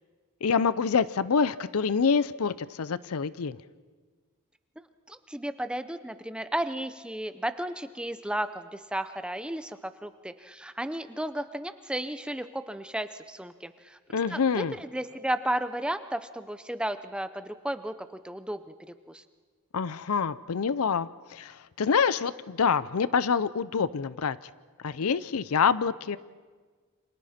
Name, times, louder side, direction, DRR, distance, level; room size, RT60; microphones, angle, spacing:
voice 1, 0.4-3.6 14.1-14.7 19.7-24.4 24.8-26.2, left 6 dB, 70° left, 17 dB, 0.5 m, -26 dB
voice 2, 5.1-14.0 14.3-19.2, right 1 dB, 5° right, 11 dB, 0.6 m, -34 dB
29.0 x 26.0 x 4.3 m, 1.5 s
head